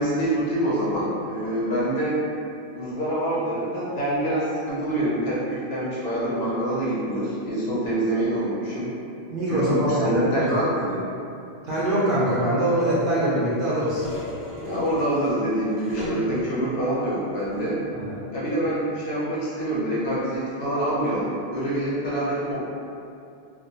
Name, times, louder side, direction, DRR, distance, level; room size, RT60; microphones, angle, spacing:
voice 1, 0.0-2.2 2.7-8.9 9.5-11.0 14.6-17.8 18.3-22.6, right 1 dB, 80° left, -7 dB, 0.8 m, -26 dB
voice 2, 9.3-10.5 11.6-14.1 17.9-18.1, right 1 dB, 65° right, -10 dB, 0.7 m, -23 dB
sound 1, 13.6-16.7 17.4-17.8 18.5-18.6, equal, 55° left, 0.6 m, -37 dB
2.2 x 2.1 x 2.6 m, 2.5 s
omnidirectional pair, 1.0 m